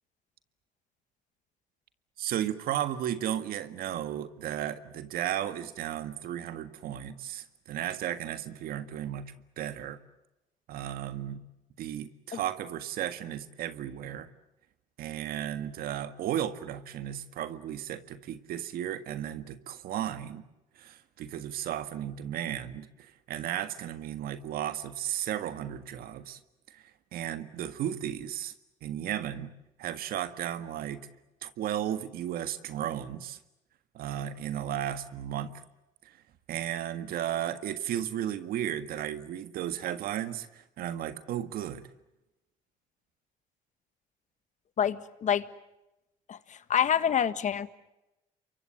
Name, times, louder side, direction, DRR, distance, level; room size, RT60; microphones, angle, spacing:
voice 1, 2.2-10.0 10.7-11.4 11.8-14.3 15.0-20.4 20.8-22.9 23.3-26.4 26.7-26.8 27.1-28.5 28.8-29.5 29.8-31.1 31.4-33.4 33.9-35.5 36.5-41.9, right 11 dB, 70° right, 11 dB, 1.7 m, -34 dB
voice 2, 44.8-45.4 46.3-47.7, left 9 dB, 50° left, 13 dB, 1.5 m, -27 dB
28.5 x 23.5 x 7.9 m, 0.95 s
supercardioid pair, 80°, 16 cm